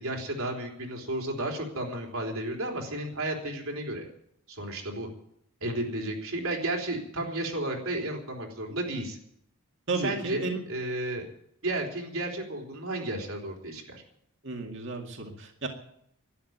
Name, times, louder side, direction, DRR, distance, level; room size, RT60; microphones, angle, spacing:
voice 1, 0.0-4.0 4.5-5.1 5.6-9.2 10.0-11.3 11.6-14.0, right 1 dB, 75° right, 1 dB, 3.7 m, -33 dB
voice 2, 9.9-10.6 14.4-15.7, right 3 dB, 55° right, 2 dB, 2.2 m, -33 dB
12.5 x 11.0 x 9.4 m, 0.72 s
head